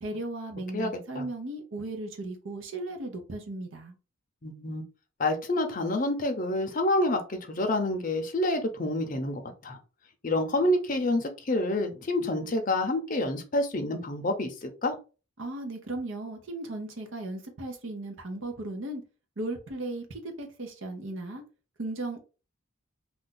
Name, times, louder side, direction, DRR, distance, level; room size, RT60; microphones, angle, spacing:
voice 1, 0.0-3.9 15.4-19.0 19.4-21.4 21.8-22.2, right 2 dB, 70° right, 0.7 m, -36 dB
voice 2, 0.7-1.2 4.4-4.8 5.2-9.8 10.2-14.9, left 1 dB, 40° left, 0.6 m, -28 dB
2.5 x 2.3 x 3.7 m
head